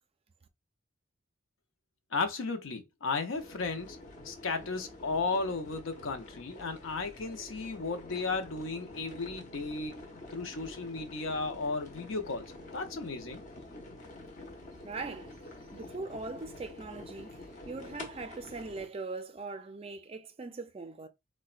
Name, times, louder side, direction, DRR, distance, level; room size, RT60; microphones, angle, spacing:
voice 1, 2.1-4.0 4.2-10.0 10.3-12.5 12.7-13.4, left 3 dB, 75° left, 0.6 m, -34 dB
sound 1, 3.3-18.9, left 2 dB, 40° left, 0.7 m, -48 dB
voice 2, 14.8-15.4 15.7-17.4 17.6-21.1, right 3 dB, 30° right, 0.4 m, -40 dB
3.9 x 2.2 x 2.4 m
head